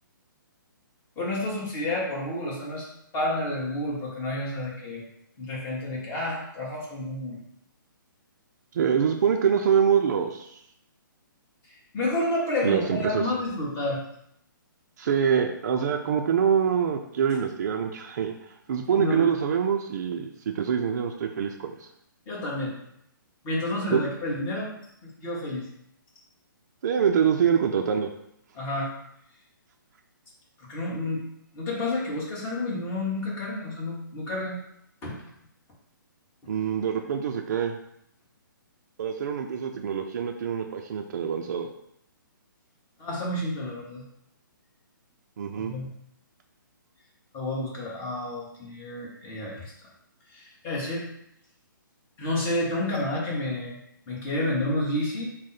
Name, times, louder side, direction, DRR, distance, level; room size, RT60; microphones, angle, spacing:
voice 1, 1.2-5.0 5.4-7.4 11.7-14.0 18.9-19.3 22.3-22.8 23.4-24.7 25.0-25.7 28.5-28.9 30.6-31.2 31.5-34.6 35.0-35.2 43.0-44.0 45.5-45.9 47.3-49.7 50.3-51.0 52.2-53.8 54.1-55.2, left 1 dB, 20° left, -4 dB, 1.1 m, -30 dB
voice 2, 8.7-10.6 12.6-13.2 15.0-21.9 23.9-24.0 26.8-28.1 36.5-37.8 39.0-41.7 45.4-45.7, right 7 dB, 55° right, 3 dB, 0.3 m, -25 dB
3.6 x 2.0 x 4.0 m, 0.75 s
hypercardioid pair, 140°, 11 cm